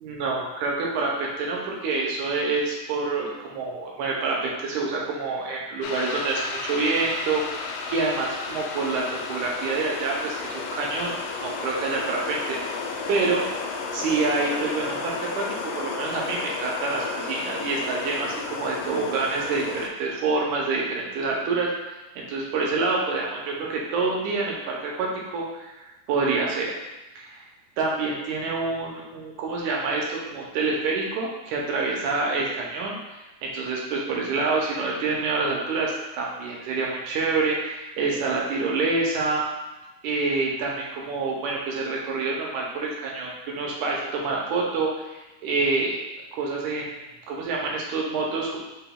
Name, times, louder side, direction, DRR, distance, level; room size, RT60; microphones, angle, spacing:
voice 1, 0.0-13.4 13.9-21.7 22.2-26.8 27.2-27.4 27.8-39.4 40.0-46.0 46.3-48.6, right 3 dB, 75° right, -2 dB, 2.0 m, -27 dB
sound 1, 5.8-19.9, left 4 dB, 80° left, 2.0 m, -33 dB
5.9 x 3.7 x 2.3 m, 1.1 s
omnidirectional pair, 4.0 m